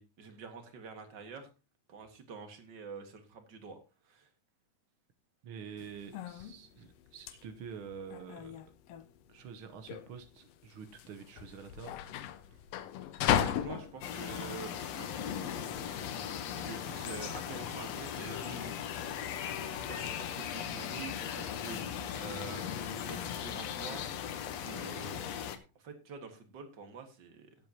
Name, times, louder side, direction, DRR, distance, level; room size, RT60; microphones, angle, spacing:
voice 1, 0.0-1.5 1.9-4.3 13.4-15.8 16.6-18.7 19.9-21.8 22.1-24.0 24.6-25.3 25.8-27.6, right 5 dB, 45° right, 6 dB, 1.8 m, -47 dB
voice 2, 5.4-8.7 9.3-11.9 12.5-12.6, right 6 dB, 85° right, 7 dB, 1.1 m, -47 dB
sound 1, 5.8-15.8, left 10 dB, 90° left, 1.4 m, -36 dB
sound 2, 14.0-25.6, left 9 dB, 65° left, 1.9 m, -38 dB
18.0 x 7.7 x 2.8 m, 0.30 s
omnidirectional pair, 3.7 m